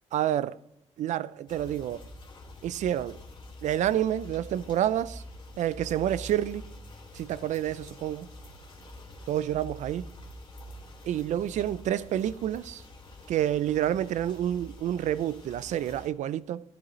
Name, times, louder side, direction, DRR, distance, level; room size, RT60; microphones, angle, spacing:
voice 1, 0.1-0.6 1.0-2.0 2.6-3.2 3.6-5.2 5.6-6.6 7.2-8.3 9.3-10.1 11.1-12.8 13.3-16.6, right 11 dB, 85° right, 0.4 m, -28 dB
sound 1, 1.5-16.1, left 1 dB, 40° left, 2.5 m, -46 dB
14.5 x 10.0 x 3.1 m
cardioid pair, 125°, 12 cm